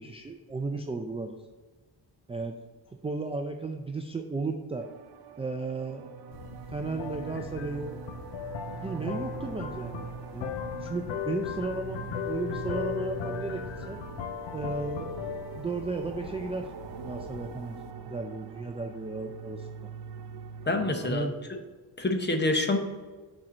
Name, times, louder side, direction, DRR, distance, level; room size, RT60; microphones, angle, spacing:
voice 1, 0.0-1.4 2.3-2.5 2.9-4.9 5.4-6.1 6.7-8.0 8.8-10.5 10.8-14.0 14.5-16.7 17.0-17.8 18.1-19.7 21.0-21.3, right 3 dB, 15° right, 4 dB, 0.4 m, -34 dB
sound 1, 4.8-21.1, right 7 dB, 65° right, 0.6 m, -42 dB
sound 2, 6.3-17.9, left 9 dB, 85° left, 0.6 m, -38 dB
voice 2, 20.7-21.6 22.0-22.8, left 2 dB, 25° left, 5 dB, 0.9 m, -27 dB
6.3 x 4.4 x 6.3 m, 1.3 s
wide cardioid pair, 130°, 42 cm